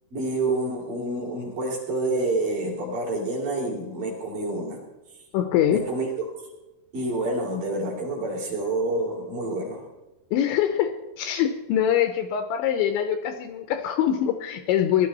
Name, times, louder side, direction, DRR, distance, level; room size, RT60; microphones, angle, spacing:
voice 1, 0.1-4.8 5.7-6.1 6.9-9.9, right 2 dB, 45° right, -2 dB, 4.3 m, -28 dB
voice 2, 5.3-5.9 10.3-15.1, left 10 dB, 75° left, 7 dB, 2.9 m, -24 dB
19.5 x 12.5 x 4.1 m, 1.1 s
omnidirectional pair, 5.8 m